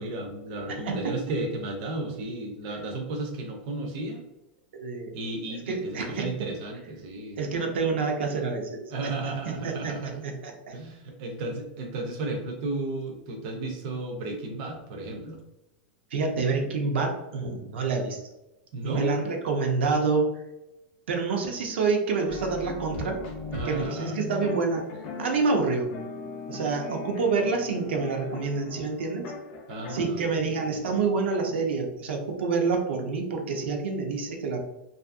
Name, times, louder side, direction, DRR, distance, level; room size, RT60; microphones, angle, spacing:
voice 1, 0.0-4.2 5.1-7.4 8.9-10.3 10.7-15.4 18.7-19.1 23.5-24.2 29.7-30.5, right 2 dB, 35° right, 1 dB, 0.4 m, -33 dB
voice 2, 0.7-1.2 4.7-5.1 5.7-6.5 7.4-8.8 9.4-10.0 10.2-10.7 16.1-18.2 18.8-20.3 21.1-23.2 23.6-24.8 25.2-25.9 26.5-29.2 29.9-34.6, right 4 dB, 85° right, 3 dB, 0.6 m, -27 dB
sound 1, 22.3-30.0, left 4 dB, 35° left, 0.5 m, -38 dB
2.6 x 2.4 x 2.4 m, 0.94 s
supercardioid pair, 175°, 6 cm